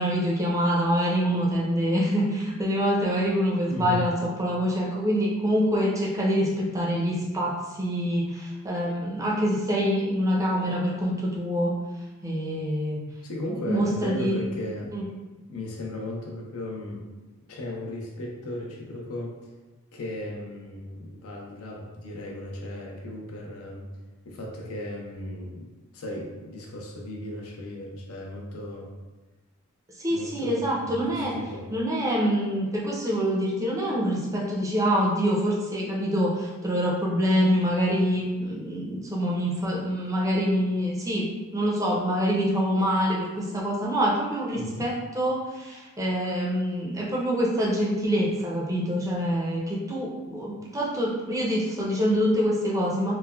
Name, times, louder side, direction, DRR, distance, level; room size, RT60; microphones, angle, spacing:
voice 1, 0.0-11.7 12.2-13.0 13.5-14.4 14.9-15.0 30.0-31.3 31.7-41.3 41.5-53.2, equal, 15° right, -4 dB, 0.4 m, -25 dB
voice 2, 3.7-4.2 13.2-15.0 15.5-17.1 17.5-19.5 19.9-23.9 24.2-28.9 30.1-31.7 44.5-44.9, left 1 dB, 85° left, 0 dB, 0.5 m, -36 dB
3.1 x 2.1 x 2.2 m, 1.2 s
head